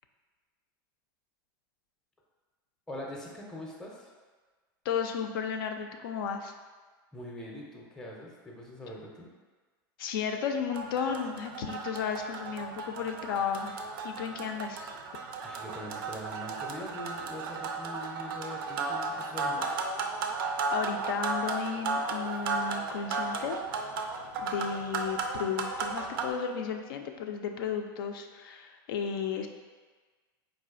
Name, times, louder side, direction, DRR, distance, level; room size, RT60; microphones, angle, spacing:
voice 1, 2.9-4.1 7.1-9.3 15.4-19.7, left 1 dB, 5° left, -2 dB, 0.5 m, -43 dB
voice 2, 4.8-6.5 10.0-14.9 20.7-23.6 24.4-29.5, left 7 dB, 75° left, 5 dB, 0.4 m, -34 dB
sound 1, 10.7-26.3, right 3 dB, 75° right, 0.4 m, -34 dB
4.1 x 2.4 x 2.4 m, 1.4 s
hypercardioid pair, 105°, 12 cm